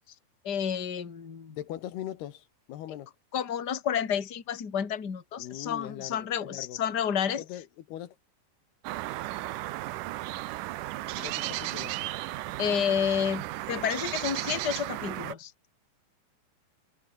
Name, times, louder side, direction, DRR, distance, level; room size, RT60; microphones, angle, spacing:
voice 1, 0.4-1.6 3.3-7.4 11.2-11.3 12.6-15.5, left 8 dB, 30° left, 2.5 m, -30 dB
voice 2, 1.5-3.1 5.4-6.8 7.4-8.2 11.2-12.0, left 12 dB, 75° left, 3.5 m, -40 dB
sound 1, 8.8-15.3, right 17 dB, 85° right, 1.8 m, -35 dB
omnidirectional pair, 4.7 m